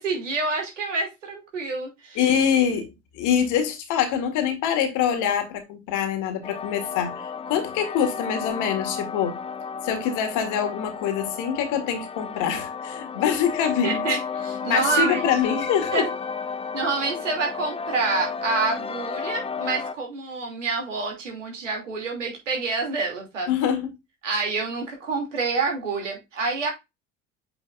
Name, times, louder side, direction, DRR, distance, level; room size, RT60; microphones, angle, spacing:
voice 1, 0.0-2.2 13.8-15.3 15.9-16.1 16.7-23.5 24.2-26.7, right 4 dB, 80° right, 2.8 m, -27 dB
voice 2, 2.2-2.9 3.1-9.4 9.8-14.1 14.7-16.1 23.5-23.9, left 8 dB, 55° left, 1.9 m, -24 dB
sound 1, 6.4-19.9, left 5 dB, 15° left, 0.6 m, -32 dB
8.2 x 5.3 x 2.5 m
figure-of-eight pair, 65°, 37 cm